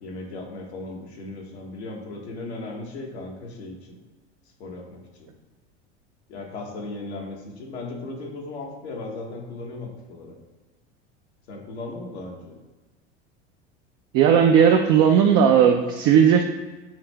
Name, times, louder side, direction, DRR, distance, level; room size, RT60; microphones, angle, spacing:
voice 1, 0.0-4.0 4.6-5.3 6.3-10.4 11.5-12.6, left 2 dB, 70° left, 0 dB, 1.2 m, -37 dB
voice 2, 14.1-16.4, right 8 dB, 40° right, 3 dB, 0.5 m, -16 dB
5.9 x 2.6 x 3.3 m, 1.3 s
hypercardioid pair, 80°, 34 cm